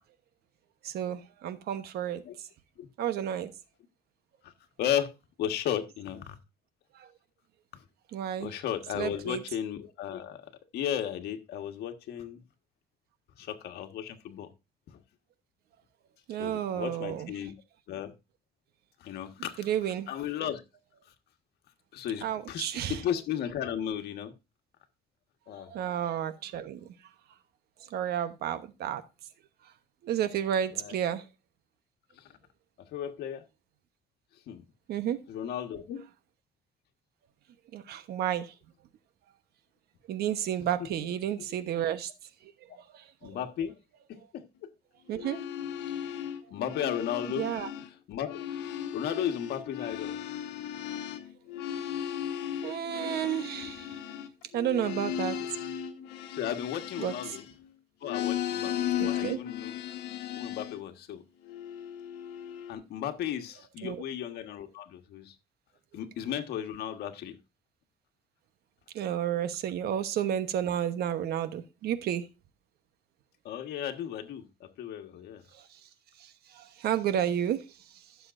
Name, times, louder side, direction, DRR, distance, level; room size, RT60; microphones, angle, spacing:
voice 1, 0.8-2.2 3.0-3.5 7.0-7.1 8.1-8.5 8.9-9.4 16.3-17.3 19.6-20.1 22.2-23.0 25.7-26.9 27.9-29.0 30.0-31.2 34.9-35.2 37.7-38.5 40.1-42.1 42.9-43.4 45.1-45.4 47.4-47.7 52.6-54.0 54.5-55.4 57.0-57.1 59.0-59.4 63.8-64.0 68.9-72.3 76.5-77.6, right 10 dB, 70° right, 1.1 m, -31 dB
voice 2, 4.8-5.1 5.4-6.4 8.4-10.4 10.7-12.4 13.4-14.5 14.9-15.0 16.4-17.5 17.9-18.1 19.0-19.7 20.1-20.6 21.9-24.3 25.5-25.7 30.7-30.9 32.2-32.3 32.9-33.4 34.5-34.6 35.3-36.0 43.2-43.7 44.1-44.7 46.5-47.4 48.1-48.4 48.9-50.1 56.3-57.4 58.0-59.7 60.3-61.2 62.7-65.3 65.9-67.3 73.4-75.4, left 10 dB, 70° left, 1.5 m, -35 dB
sound 1, 45.1-47.9 48.2-57.7 58.0-60.8 61.5-62.7, left 10 dB, 90° left, 1.3 m, -36 dB
15.5 x 6.9 x 2.6 m
cardioid pair, 110°, 17 cm